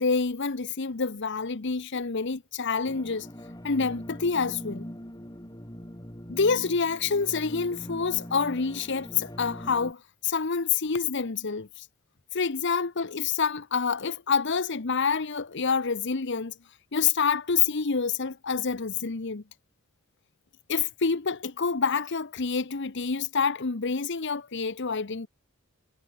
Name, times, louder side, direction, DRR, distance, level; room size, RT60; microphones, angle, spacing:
voice 1, 0.0-3.3 3.6-4.8 6.3-11.7 12.3-16.5 16.9-19.4 20.7-25.3, left 5 dB, 55° left, 0.9 m, -27 dB
sound 1, 2.9-9.9, equal, 20° left, 4.2 m, -42 dB
head